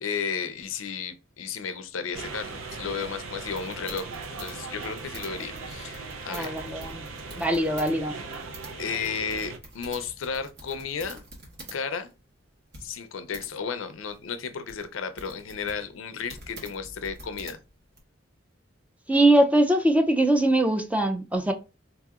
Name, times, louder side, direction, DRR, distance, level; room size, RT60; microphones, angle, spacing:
voice 1, 0.0-4.1 4.4-6.6 8.8-11.2 11.7-12.1 12.8-17.6, left 6 dB, 85° left, 0.5 m, -33 dB
sound 1, 2.1-9.6, right 4 dB, 80° right, 0.5 m, -39 dB
sound 2, 3.4-7.9 8.2-11.8 12.1-12.2 12.7-13.5 14.1-18.0, right 2 dB, 60° right, 1.2 m, -46 dB
voice 2, 6.3-7.1 7.4-8.2 19.1-21.5, right 1 dB, 5° right, 0.4 m, -22 dB
3.9 x 2.8 x 2.4 m
head